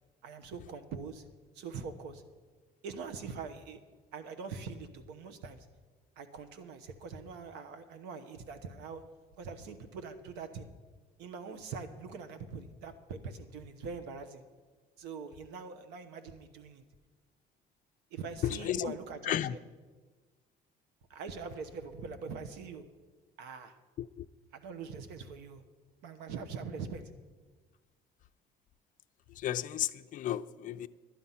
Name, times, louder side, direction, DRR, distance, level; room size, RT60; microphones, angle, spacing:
voice 1, 0.2-1.2 1.5-2.2 2.8-3.8 4.1-5.7 6.2-9.0 9.4-10.7 11.2-14.4 15.0-16.8 18.1-19.6 21.1-22.8 23.4-23.8 24.5-25.6 26.0-27.0, right 5 dB, 90° right, 1.0 m, -43 dB
voice 2, 18.4-18.9 19.3-19.6 24.0-24.3 29.4-30.9, left 12 dB, 50° left, 0.4 m, -33 dB
11.5 x 9.4 x 5.7 m
cardioid pair, 110°, 17 cm